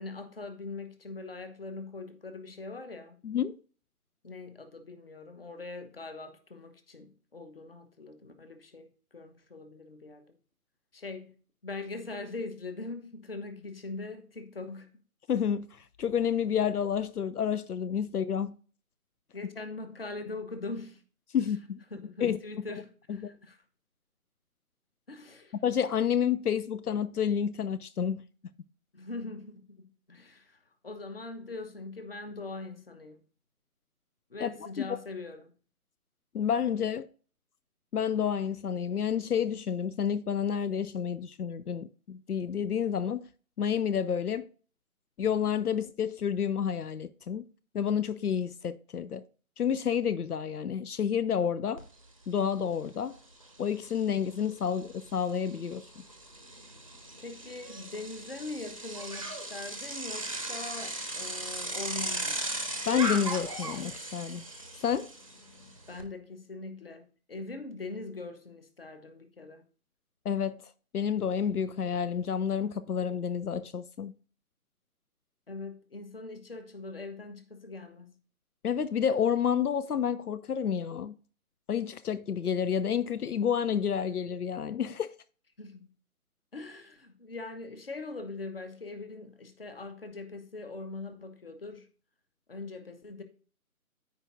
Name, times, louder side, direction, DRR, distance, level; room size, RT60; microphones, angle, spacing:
voice 1, 0.0-3.2 4.2-8.9 9.1-10.2 10.9-11.3 11.6-14.9 19.3-21.0 21.9-23.6 25.1-25.5 28.9-30.6 30.8-33.2 34.3-35.5 57.2-62.4 65.9-69.7 75.5-78.1 85.6-85.9 86.5-91.9 92.5-93.2, left 3 dB, 40° left, 1.0 m, -42 dB
voice 2, 3.2-3.6 15.3-18.6 21.3-21.8 22.2-22.4 23.2-23.3 25.6-28.2 34.4-34.5 34.8-35.0 36.3-37.1 37.9-43.3 43.6-44.5 45.2-47.5 47.7-49.2 49.6-51.8 52.3-53.2 53.6-56.0 62.9-64.5 64.8-65.1 70.3-70.6 70.9-74.1 78.6-81.1 81.7-85.1, left 8 dB, 85° left, 0.5 m, -29 dB
Bicycle, 51.8-51.9 52.2-66.0, right 1 dB, 25° right, 0.7 m, -38 dB
13.5 x 4.6 x 2.5 m
figure-of-eight pair, 155°, 44 cm